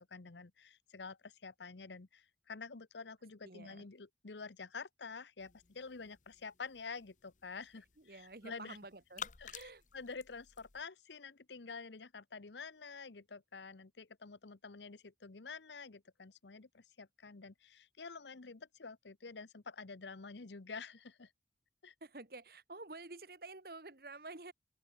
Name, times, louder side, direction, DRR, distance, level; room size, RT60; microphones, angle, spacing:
voice 1, 0.0-8.8 9.4-21.3 21.8-21.9, left 4 dB, 80° left, 1.0 m, -49 dB
voice 2, 3.4-3.9 8.0-9.8 22.0-24.5, right 3 dB, 55° right, 1.8 m, -50 dB
sound 1, 5.4-10.8, left 7 dB, 45° left, 0.9 m, -53 dB
open air
head